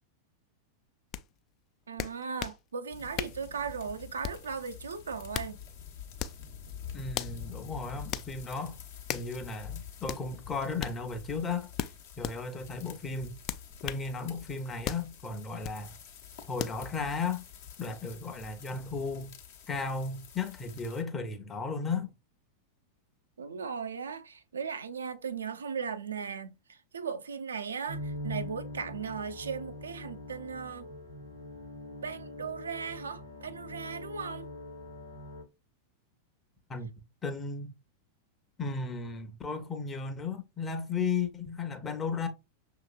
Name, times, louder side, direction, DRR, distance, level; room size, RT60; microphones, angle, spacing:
sound 1, 1.1-1.2 2.0-2.6 3.2-3.4 4.2-4.5 5.1-5.5 6.2-6.4 7.1-7.4 8.1-8.3 9.1-9.3 10.1-10.2 10.8-11.0 11.8-12.4 13.5-14.1 14.8-15.1 15.6-15.8 16.6-16.8, left 11 dB, 35° left, 0.3 m, -36 dB
voice 1, 1.9-5.6 23.4-30.9 32.0-34.5, right 6 dB, 70° right, 0.4 m, -37 dB
sound 2, 2.9-21.0, left 8 dB, 55° left, 0.9 m, -48 dB
voice 2, 6.9-8.8 9.1-11.7 12.2-13.4 13.8-15.9 16.5-17.4 17.8-19.4 19.7-22.1 36.7-36.9 37.2-37.7 38.6-42.3, left 4 dB, 20° left, 0.8 m, -35 dB
sound 3, 27.9-35.4, left 1 dB, 85° left, 1.2 m, -42 dB
6.1 x 2.9 x 2.3 m
figure-of-eight pair, 90°, 0 cm